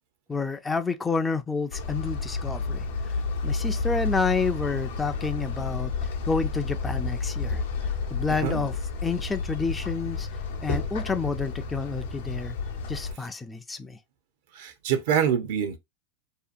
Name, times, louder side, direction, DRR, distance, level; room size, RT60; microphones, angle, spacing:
voice 1, 0.3-3.1 3.4-10.3 10.6-12.5 12.9-14.0, left 4 dB, 15° left, 0.3 m, -29 dB
sound 1, 1.7-13.1, left 4 dB, 80° left, 0.7 m, -31 dB
voice 2, 14.5-15.8, right 8 dB, 65° right, 0.6 m, -25 dB
2.7 x 2.3 x 2.5 m
hypercardioid pair, 105°, 0 cm